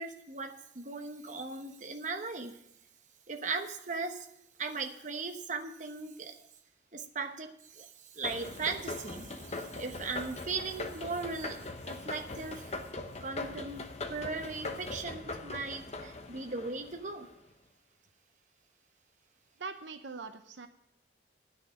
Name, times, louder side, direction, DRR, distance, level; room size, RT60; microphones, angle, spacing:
voice 1, 0.0-2.6 3.3-4.3 4.6-6.4 6.9-12.8 13.2-17.3, right 4 dB, 40° right, 6 dB, 1.0 m, -38 dB
sound 1, 8.2-17.3, left 2 dB, 35° left, 0.9 m, -41 dB
voice 2, 19.6-20.7, right 4 dB, 75° right, 8 dB, 0.7 m, -42 dB
10.0 x 6.7 x 8.5 m, 0.75 s
head